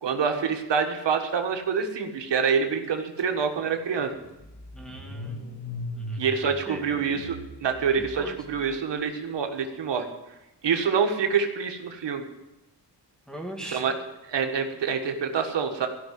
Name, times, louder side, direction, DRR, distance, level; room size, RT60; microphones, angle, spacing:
voice 1, 0.0-4.1 6.2-10.1 10.6-12.3 13.6-13.9 14.3-15.9, right 6 dB, 80° right, 5 dB, 1.6 m, -26 dB
Car / Engine starting, 3.2-3.3 3.6-8.8, left 1 dB, 40° left, 2.0 m, -39 dB
voice 2, 4.7-5.4 6.0-6.2 6.4-7.3 8.0-8.4 13.3-13.9, right 1 dB, ahead, -1 dB, 2.1 m, -39 dB
16.0 x 5.9 x 9.5 m, 0.96 s
cardioid pair, 90°, 42 cm